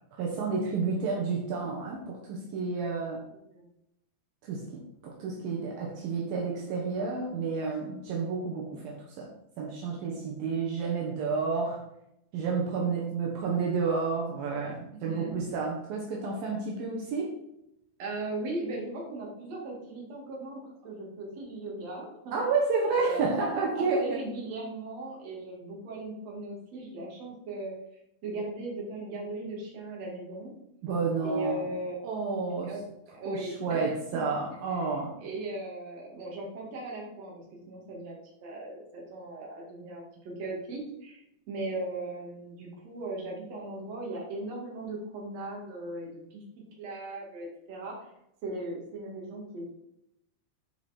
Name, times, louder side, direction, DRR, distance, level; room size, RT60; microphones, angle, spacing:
voice 1, 0.1-3.2 4.4-11.8 12.3-17.4 22.3-24.2 30.8-31.7 32.0-32.7 33.3-35.2, right 4 dB, 80° right, -2 dB, 2.0 m, -30 dB
voice 2, 14.9-15.3 18.0-22.3 22.9-23.3 23.7-27.7 28.2-30.5 31.2-32.0 32.6-32.8 33.1-34.2 34.7-34.8 35.2-41.2 41.5-46.4 46.8-48.1 48.4-49.7, right 2 dB, 45° right, -2 dB, 2.4 m, -38 dB
10.5 x 4.9 x 4.4 m, 0.80 s
omnidirectional pair, 6.0 m